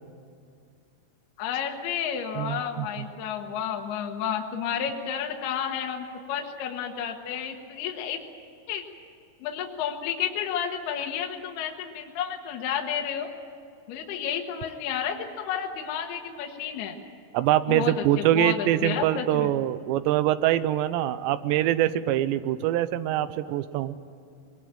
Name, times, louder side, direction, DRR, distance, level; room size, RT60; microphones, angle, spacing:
voice 1, 1.4-8.2 8.7-8.9 9.4-13.3 13.9-17.0 17.7-19.5, left 8 dB, 65° left, 2 dB, 3.1 m, -31 dB
voice 2, 2.4-3.1 17.3-24.0, right 13 dB, 80° right, 13 dB, 2.7 m, -24 dB
22.5 x 21.5 x 9.0 m, 2.4 s
omnidirectional pair, 5.6 m